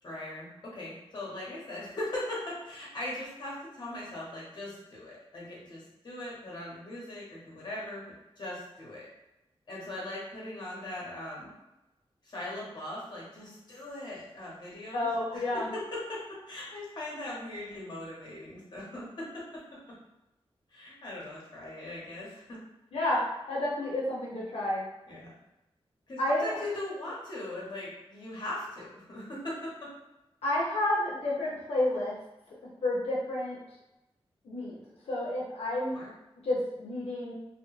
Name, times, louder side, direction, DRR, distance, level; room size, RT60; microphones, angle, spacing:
voice 1, 0.0-8.0 8.4-9.1 9.7-11.5 12.2-19.6 19.9-20.0 20.7-22.6 25.1-25.4 26.1-29.9 35.9-36.1, left 1 dB, 45° left, -5 dB, 0.8 m, -40 dB
voice 2, 14.9-15.7 22.9-23.2 23.5-24.8 26.2-26.6 30.4-32.2 32.8-33.6 34.4-34.8 35.0-36.0 36.4-37.3, left 1 dB, 85° left, -5 dB, 0.5 m, -30 dB
2.2 x 2.1 x 3.0 m, 0.96 s
wide cardioid pair, 170°, 10 cm